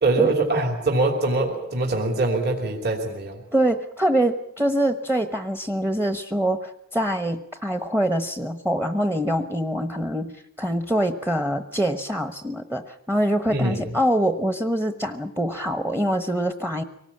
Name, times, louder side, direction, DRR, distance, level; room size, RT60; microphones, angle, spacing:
voice 1, 0.0-3.4 13.5-13.8, right 2 dB, 50° right, 2 dB, 3.1 m, -23 dB
voice 2, 3.5-16.8, right 1 dB, 10° right, 8 dB, 1.0 m, -24 dB
24.0 x 19.5 x 8.6 m, 0.76 s
head